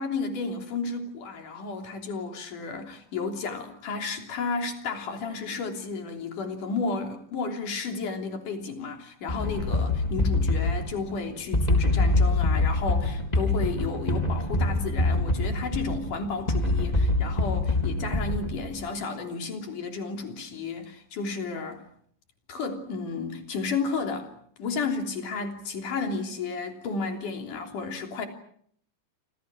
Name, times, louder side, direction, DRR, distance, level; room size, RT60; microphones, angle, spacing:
voice 1, 0.0-21.8 22.5-24.3 24.6-28.3, left 4 dB, 85° left, 4.9 m, -32 dB
sound 1, 9.3-18.8, left 2 dB, 10° left, 3.9 m, -25 dB
28.0 x 27.0 x 6.3 m
omnidirectional pair, 3.6 m